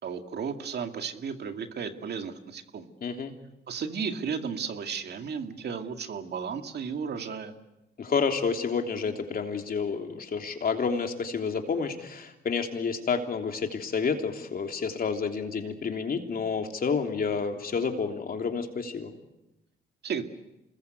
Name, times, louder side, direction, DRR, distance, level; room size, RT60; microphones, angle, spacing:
voice 1, 0.0-2.9 3.7-7.5 20.0-20.2, right 6 dB, 55° right, 6 dB, 2.2 m, -34 dB
voice 2, 3.0-3.3 8.0-19.1, left 5 dB, 50° left, 4 dB, 3.2 m, -29 dB
27.5 x 21.0 x 8.2 m, 0.95 s
cardioid pair, 90°, 20 cm